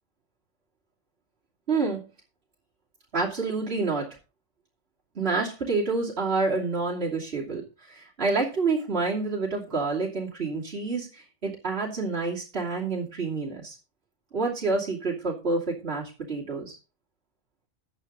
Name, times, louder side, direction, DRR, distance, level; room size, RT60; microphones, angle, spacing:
voice 1, 1.7-2.0 3.1-4.2 5.1-13.8 14.3-16.8, right 3 dB, 55° right, -4 dB, 3.1 m, -28 dB
13.5 x 8.7 x 3.9 m, 0.31 s
omnidirectional pair, 1.2 m